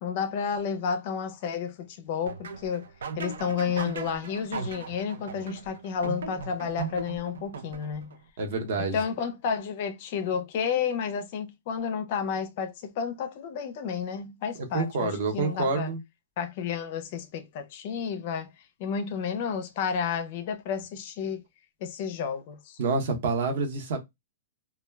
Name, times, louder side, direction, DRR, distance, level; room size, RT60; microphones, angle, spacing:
voice 1, 0.0-2.9 3.2-8.1 8.8-15.9 16.4-18.5 18.8-21.4 21.8-22.8, left 6 dB, 35° left, 0.4 m, -31 dB
sound 1, 2.3-8.2, right 6 dB, 90° right, 0.4 m, -38 dB
voice 2, 8.4-9.0 14.7-16.0 22.8-24.0, right 4 dB, 45° right, 0.7 m, -27 dB
2.2 x 2.1 x 3.2 m
hypercardioid pair, 180°, 0 cm